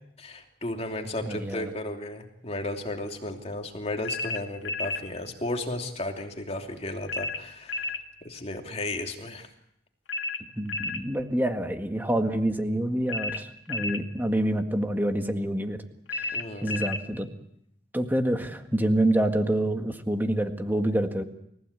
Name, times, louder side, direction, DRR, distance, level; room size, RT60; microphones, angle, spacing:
voice 1, 0.2-7.9 8.2-9.5 16.3-16.8, left 1 dB, 35° left, 3 dB, 2.9 m, -34 dB
voice 2, 1.2-1.7 10.6-15.8 16.1-17.3 17.9-21.2, right 1 dB, 10° right, 6 dB, 1.8 m, -27 dB
sound 1, 4.0-5.1 7.1-8.0 10.1-11.1 13.1-14.0 16.1-17.1, left 3 dB, 85° left, 2.1 m, -32 dB
29.5 x 16.0 x 8.3 m, 0.75 s
head